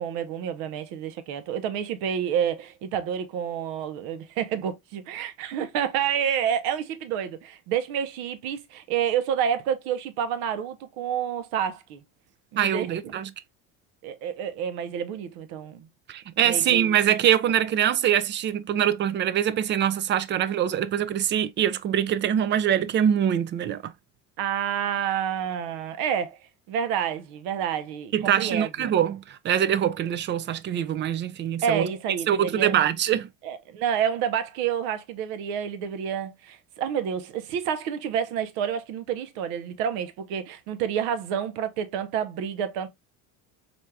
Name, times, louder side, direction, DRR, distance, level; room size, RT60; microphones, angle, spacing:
voice 1, 0.0-12.0 12.5-13.1 14.0-15.9 16.4-16.9 24.4-26.4 26.7-28.9 31.6-32.8 33.4-42.9, right 8 dB, 75° right, 0.8 m, -29 dB
voice 2, 12.6-13.3 16.1-23.9 28.1-31.9 32.3-33.3, right 10 dB, 30° right, 0.4 m, -24 dB
4.2 x 3.3 x 2.2 m
supercardioid pair, 115°, 37 cm